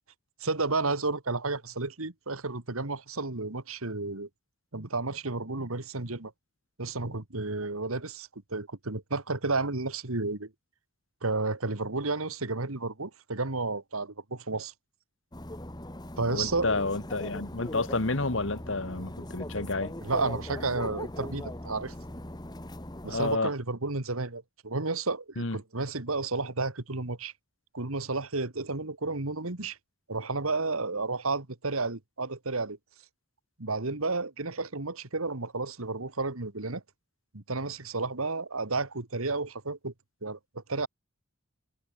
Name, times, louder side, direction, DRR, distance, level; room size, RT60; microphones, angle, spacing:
voice 1, 0.4-4.3 4.7-6.3 6.8-10.5 11.2-14.7 16.2-16.7 20.0-21.9 23.0-27.3 27.7-29.8 30.1-32.8 33.6-36.8 37.3-39.9 40.2-40.9, right 3 dB, 75° right, 2.0 m, -32 dB
sound 1, 15.3-23.4, left 1 dB, 20° left, 1.6 m, -40 dB
voice 2, 16.3-19.9 23.1-23.5 25.4-25.6, left 3 dB, 60° left, 1.6 m, -30 dB
head